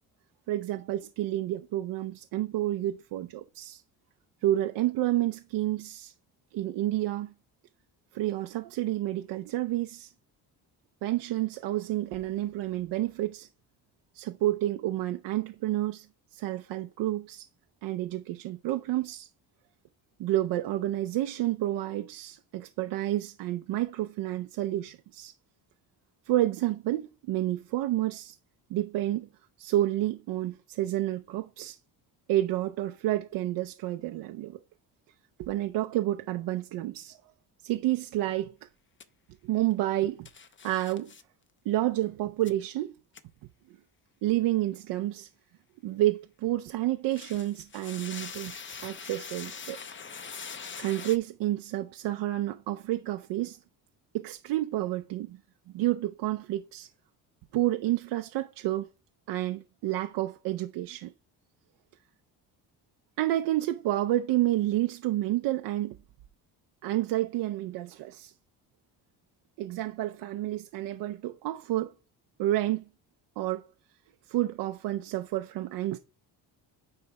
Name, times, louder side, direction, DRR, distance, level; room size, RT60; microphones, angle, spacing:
voice 1, 0.5-3.8 4.4-6.1 6.5-7.3 8.1-10.1 11.0-13.5 14.1-16.1 16.3-17.5 17.8-19.3 20.2-25.3 26.3-28.3 28.7-29.3 29.6-31.8 32.3-34.6 35.4-37.2 37.6-38.6 39.4-40.3 40.6-41.1 41.7-43.0 43.7-43.8 44.2-45.3 45.8-49.8 50.8-53.6 54.1-55.4 55.7-56.9 57.5-58.9 59.3-61.1 63.2-66.0 66.8-68.3 69.6-71.9 72.4-72.8 73.4-73.7 74.3-76.0, right 15 dB, 85° right, 0.6 m, -30 dB
sound 1, 39.0-39.1 40.3-41.2 42.5-42.6 43.2-43.3 47.0-51.2, left 6 dB, 30° left, 0.8 m, -42 dB
9.6 x 3.3 x 4.7 m
cardioid pair, 100°, 40 cm